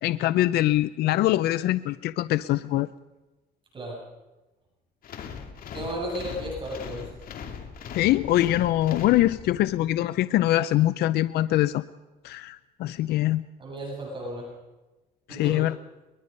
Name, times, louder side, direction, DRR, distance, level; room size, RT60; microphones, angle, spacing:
voice 1, 0.0-2.9 7.9-11.8 12.2-13.4 15.3-15.8, left 15 dB, 75° left, 15 dB, 0.6 m, -23 dB
sound 1, 5.0-9.8, left 6 dB, 60° left, 2.7 m, -39 dB
voice 2, 5.7-7.1 13.6-14.5 15.3-15.7, equal, 30° right, -2 dB, 7.3 m, -34 dB
23.0 x 21.5 x 5.4 m, 1.1 s
cardioid pair, 110°, 17 cm